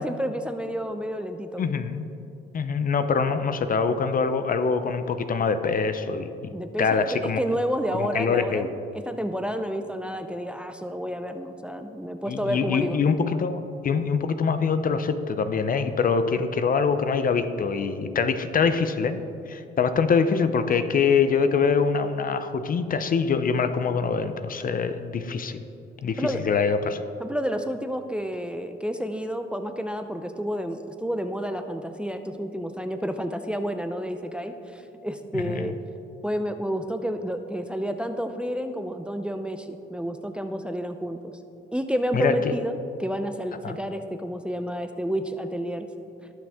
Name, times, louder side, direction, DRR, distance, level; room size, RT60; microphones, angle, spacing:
voice 1, 0.0-1.7 6.5-13.0 26.2-26.4 26.9-35.7 36.2-41.2 41.7-45.9, equal, 5° right, 7 dB, 0.5 m, -30 dB
voice 2, 1.6-2.1 2.5-6.5 6.8-7.4 7.9-8.7 12.3-19.2 19.5-25.6 26.0-27.0 35.4-35.7 42.1-42.5 43.6-43.8, left 5 dB, 45° left, 10 dB, 0.6 m, -24 dB
18.5 x 6.1 x 3.6 m, 2.7 s
cardioid pair, 90°, 20 cm